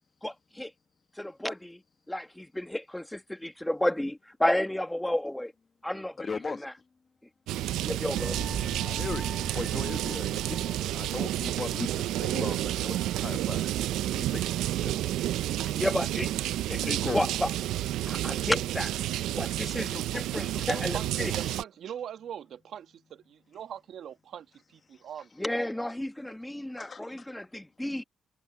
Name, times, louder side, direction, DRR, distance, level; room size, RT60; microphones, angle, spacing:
voice 1, 0.2-0.7 1.2-1.8 2.1-5.5 5.8-6.7 7.7-8.4 15.8-16.3 16.7-17.5 18.1-18.9 19.3-21.3 25.4-28.0, left 1 dB, 5° left, 1.4 m, -32 dB
voice 2, 6.2-6.7 8.8-13.7 14.1-15.0 16.8-17.2 19.7-20.3 20.7-20.9 24.9-25.2 26.7-27.4, left 5 dB, 35° left, 1.3 m, -39 dB
sound 1, 7.5-21.6, right 14 dB, 90° right, 0.4 m, -30 dB
sound 2, 8.2-17.2 17.5-17.8, right 2 dB, 15° right, 4.0 m, -44 dB
voice 3, 20.7-25.3, right 9 dB, 65° right, 1.6 m, -41 dB
cardioid pair, 90°, 0 cm